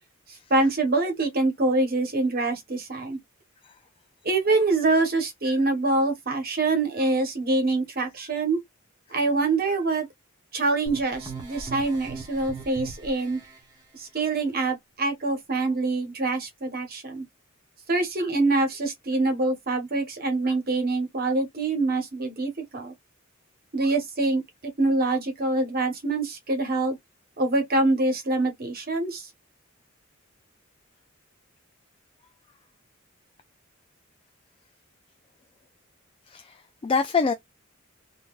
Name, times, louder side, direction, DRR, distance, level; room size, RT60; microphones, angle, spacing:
voice 1, 0.5-3.2 4.2-8.6 9.1-10.1 10.5-13.4 13.9-17.2 17.9-22.9 23.7-24.4 24.8-27.0 27.4-29.3, right 2 dB, 45° right, 1.1 m, -25 dB
sound 1, 10.9-13.6, right 4 dB, 20° right, 1.1 m, -39 dB
voice 2, 36.3-37.3, left 5 dB, 25° left, 0.3 m, -26 dB
3.8 x 2.6 x 2.4 m
head